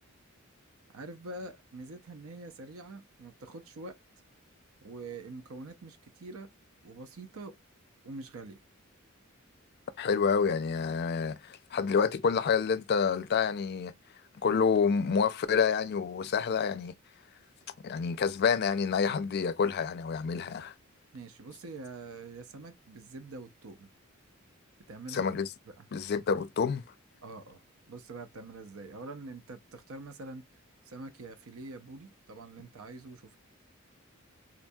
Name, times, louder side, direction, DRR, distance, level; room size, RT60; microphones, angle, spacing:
voice 1, 0.9-4.0 4.8-6.5 6.8-7.5 8.0-8.6 21.1-23.9 24.9-25.3 25.8-25.9 27.2-27.6 27.9-30.5 30.9-33.4, right 2 dB, 85° right, 0.6 m, -45 dB
voice 2, 10.0-13.9 14.4-16.9 17.8-20.7 25.1-25.5 25.9-26.8, left 6 dB, 50° left, 0.4 m, -28 dB
3.8 x 2.3 x 2.6 m
head